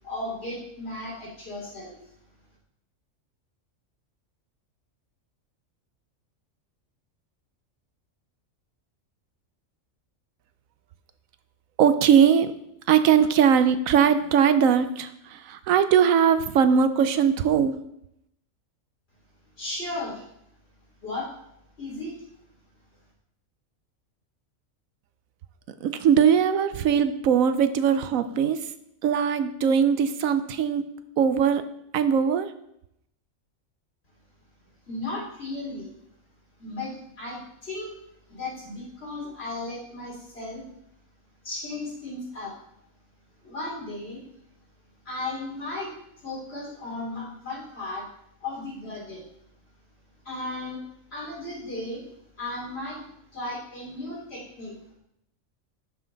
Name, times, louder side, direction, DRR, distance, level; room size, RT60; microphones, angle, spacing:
voice 1, 0.0-2.0 19.6-20.2 21.0-21.3 21.8-22.2 34.9-35.9 36.6-37.9 38.3-40.6 41.4-42.5 43.4-44.2 45.0-45.9 46.2-48.1 48.4-49.2 50.2-50.8 51.1-52.1 52.4-53.0 53.3-54.7, left 2 dB, 50° left, -4 dB, 3.4 m, -35 dB
voice 2, 11.8-12.5 12.9-17.8 25.8-28.6 29.0-30.8 31.2-31.6 31.9-32.5, right 7 dB, 85° right, 11 dB, 1.1 m, -20 dB
11.0 x 5.9 x 3.9 m, 0.77 s
omnidirectional pair, 1.4 m